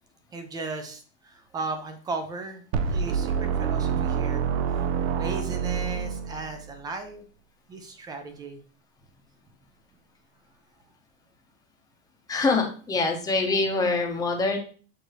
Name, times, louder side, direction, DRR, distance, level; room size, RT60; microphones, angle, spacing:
voice 1, 0.3-4.5 4.7-4.9 5.2-7.3 7.7-8.6, right 3 dB, 15° right, 7 dB, 0.3 m, -36 dB
sound 1, 2.7-6.7, right 6 dB, 80° right, 0.6 m, -27 dB
voice 2, 12.3-14.6, left 3 dB, 10° left, 2 dB, 0.7 m, -24 dB
6.5 x 2.6 x 3.0 m, 0.41 s
supercardioid pair, 150°, 33 cm